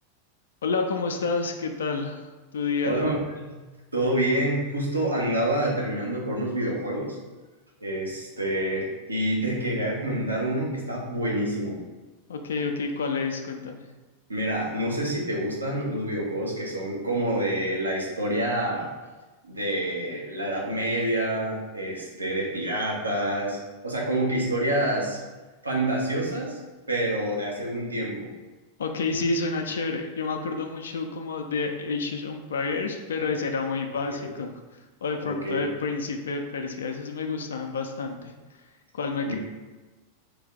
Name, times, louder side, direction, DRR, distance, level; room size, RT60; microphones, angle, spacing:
voice 1, 0.6-3.0 12.3-13.9 28.8-34.5 35.0-38.3 38.9-39.3, left 4 dB, 65° left, 5 dB, 0.3 m, -29 dB
voice 2, 2.8-3.6 3.9-7.2 7.8-11.8 14.3-18.9 19.4-23.6 23.8-25.2 25.6-26.6 26.9-28.3 34.1-34.3 35.2-35.7 39.3-39.4, right 1 dB, 80° right, -3 dB, 0.9 m, -27 dB
3.3 x 3.1 x 3.6 m, 1.2 s
figure-of-eight pair, 90°, 0 cm